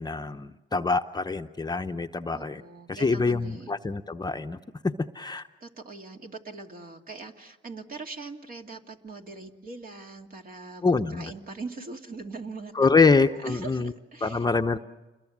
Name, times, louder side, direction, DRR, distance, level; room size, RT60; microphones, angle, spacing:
voice 1, 0.0-2.6 2.9-4.6 4.8-5.4 10.8-11.3 12.8-13.9 14.2-14.8, left 4 dB, 20° left, 6 dB, 0.8 m, -25 dB
voice 2, 2.3-3.7 5.6-14.4, right 3 dB, 45° right, 3 dB, 2.5 m, -41 dB
29.0 x 22.0 x 7.4 m, 1.1 s
cardioid pair, 90°, 20 cm